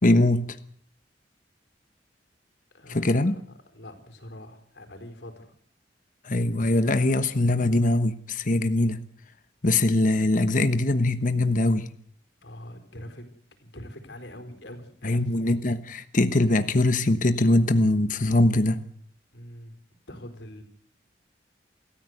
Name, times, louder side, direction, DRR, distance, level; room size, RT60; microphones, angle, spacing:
voice 1, 0.0-0.6 2.9-3.4 6.2-9.0 9.6-11.9 15.0-18.8, left 2 dB, 45° left, 10 dB, 1.1 m, -22 dB
voice 2, 2.7-3.3 3.7-5.5 12.4-13.3 13.6-15.3 19.3-19.8 20.1-20.6, left 1 dB, 75° left, 6 dB, 4.4 m, -43 dB
26.5 x 14.5 x 8.0 m, 0.63 s
head